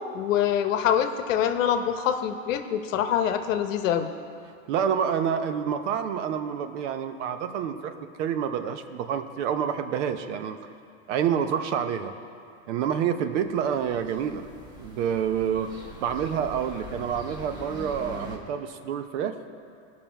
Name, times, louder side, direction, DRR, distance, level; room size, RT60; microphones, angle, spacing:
voice 1, 0.1-4.1, left 9 dB, 65° left, 8 dB, 0.9 m, -25 dB
voice 2, 4.7-7.9 8.2-10.6 11.1-12.1 12.7-14.5 14.8-19.3, right 8 dB, 60° right, 8 dB, 0.8 m, -28 dB
sound 1, 13.5-18.4, left 1 dB, 10° right, 1.2 m, -43 dB
17.5 x 5.9 x 4.5 m, 2.4 s
hypercardioid pair, 130°, 41 cm